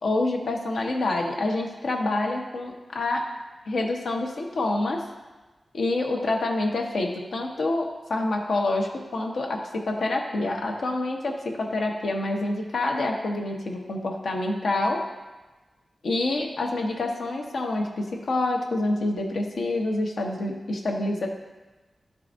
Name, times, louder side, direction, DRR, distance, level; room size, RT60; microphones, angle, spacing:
voice 1, 0.0-3.2 3.7-5.0 5.7-15.0 16.0-21.3, left 2 dB, 75° left, 0 dB, 1.0 m, -27 dB
11.5 x 4.8 x 2.6 m, 1.2 s
wide cardioid pair, 145°, 0 cm